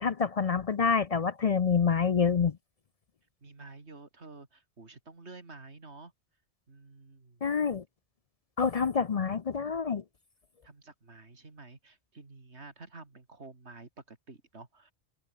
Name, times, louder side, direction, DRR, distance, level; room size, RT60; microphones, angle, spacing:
voice 1, 0.0-2.6 7.4-7.8 8.6-10.0, left 6 dB, 45° left, 0.5 m, -27 dB
voice 2, 3.4-6.1 6.7-7.4 10.6-14.9, right 3 dB, 80° right, 3.1 m, -50 dB
open air
omnidirectional pair, 1.1 m